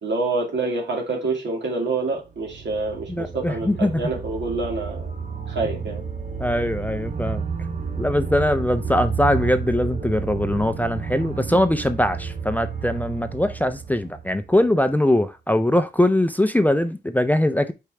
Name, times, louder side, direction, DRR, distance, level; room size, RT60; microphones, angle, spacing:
voice 1, 0.0-5.1 5.5-6.0, right 3 dB, 80° right, 2.5 m, -27 dB
sound 1, 2.1-14.9, right 6 dB, 45° right, 1.0 m, -31 dB
voice 2, 3.1-4.1 6.4-7.4 8.0-17.7, left 1 dB, 10° left, 0.4 m, -21 dB
5.1 x 4.3 x 4.7 m
wide cardioid pair, 145°, 18 cm